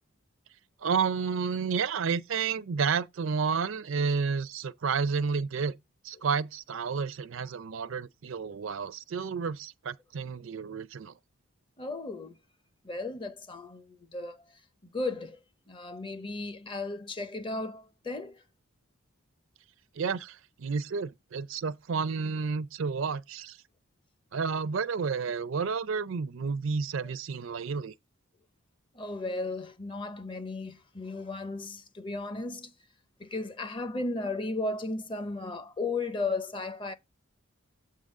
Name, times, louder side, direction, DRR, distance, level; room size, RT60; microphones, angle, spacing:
voice 1, 0.8-5.8 6.0-11.1 20.0-23.6 24.3-27.9, right 5 dB, 65° right, 0.4 m, -31 dB
voice 2, 11.8-12.4 12.8-14.6 14.9-15.4 15.7-18.4 27.0-27.1 28.9-32.7 33.2-36.9, left 2 dB, 20° left, 0.6 m, -35 dB
7.6 x 3.7 x 6.4 m
head